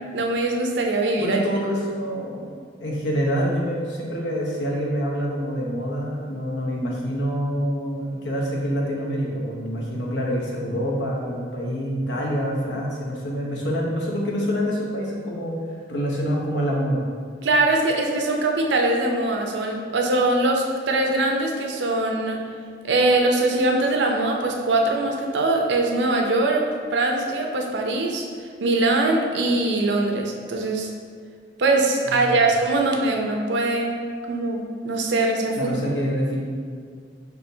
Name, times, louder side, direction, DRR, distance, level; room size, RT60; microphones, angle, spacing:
voice 1, 0.1-1.4 17.4-22.4 22.8-26.6 26.9-28.2 28.6-30.9 31.6-34.0 34.3-35.7, right 2 dB, 80° right, 1 dB, 0.5 m, -22 dB
voice 2, 1.2-2.5 2.8-15.6 15.9-17.1 32.1-32.3 35.6-36.5, equal, 90° left, -3 dB, 0.9 m, -26 dB
5.7 x 2.7 x 2.7 m, 2.1 s
head